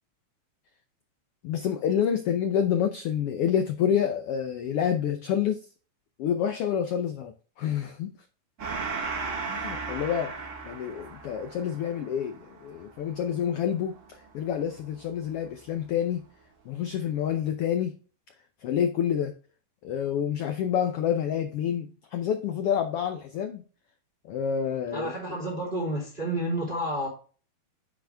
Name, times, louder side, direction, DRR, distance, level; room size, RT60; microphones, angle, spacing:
voice 1, 1.4-5.6 6.2-7.3 7.6-8.1 9.5-10.3 10.7-14.0 14.3-16.2 16.7-17.9 18.6-19.3 19.8-23.6 24.3-25.4, left 9 dB, 85° left, 1.3 m, -28 dB
Gong, 8.6-15.6, right 4 dB, 50° right, 0.9 m, -37 dB
voice 2, 24.9-27.1, right 1 dB, 15° right, 3.3 m, -30 dB
9.0 x 5.0 x 3.4 m
omnidirectional pair, 3.5 m